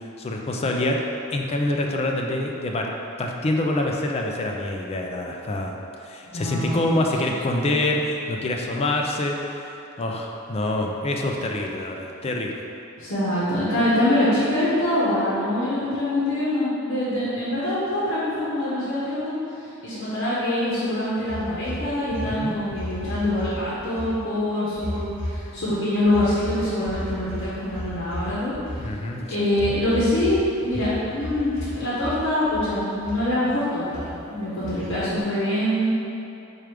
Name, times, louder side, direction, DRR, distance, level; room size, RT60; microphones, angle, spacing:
voice 1, 0.2-1.0 1.3-2.9 3.2-9.4 10.0-12.6 22.2-22.5 28.8-29.7, left 1 dB, 30° left, 1 dB, 0.3 m, -26 dB
voice 2, 6.2-7.1 13.0-19.3 19.8-28.5 29.3-35.9, left 1 dB, 65° left, -10 dB, 0.9 m, -24 dB
sound 1, 21.3-23.5 23.8-24.1 24.7-25.6 26.0-29.0 29.5-30.4 30.7-31.7 32.0-32.7 33.0-33.5 33.9-34.1 34.6-35.2, equal, 25° right, 1.2 m, -33 dB
4.6 x 2.4 x 4.8 m, 2.8 s
head